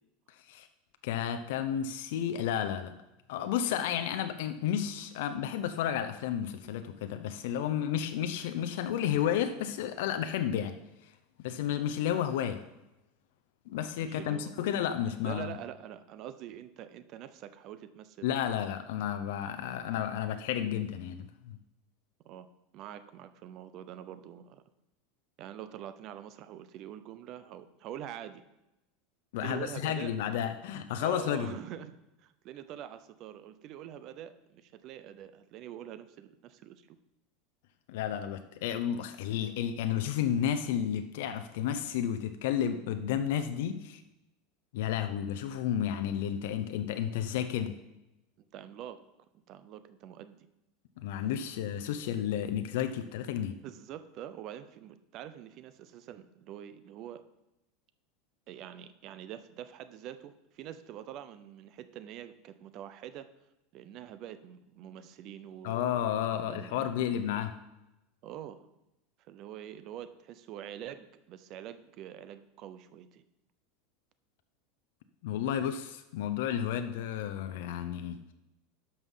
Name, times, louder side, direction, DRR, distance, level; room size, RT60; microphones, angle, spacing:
voice 1, 1.0-2.9 3.3-10.8 11.4-12.6 13.7-15.6 18.2-21.6 29.3-31.5 37.9-44.0 44.7-47.8 51.0-53.6 65.6-67.5 75.2-78.2, left 9 dB, 70° left, 8 dB, 0.7 m, -32 dB
voice 2, 14.0-14.7 15.2-18.3 22.2-22.5 22.7-24.6 25.4-28.4 29.4-30.1 31.0-37.0 48.5-49.0 49.3-50.5 53.6-57.2 58.5-63.3 63.7-67.2 68.2-68.7 69.3-73.2, right 10 dB, 40° right, 12 dB, 0.7 m, -45 dB
12.0 x 5.6 x 5.6 m, 0.93 s
supercardioid pair, 150°, 0 cm